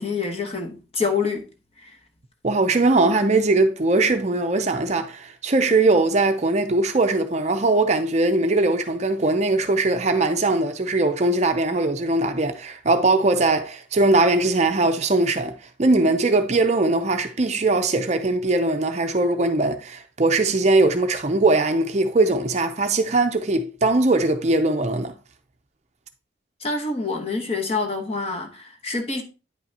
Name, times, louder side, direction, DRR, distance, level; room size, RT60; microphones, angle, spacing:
voice 1, 0.0-1.4 1.8-1.9 26.6-29.2, left 4 dB, 30° left, 1.1 m, -26 dB
voice 2, 2.4-25.1, right 2 dB, 35° right, 0.6 m, -20 dB
9.5 x 5.6 x 2.8 m
head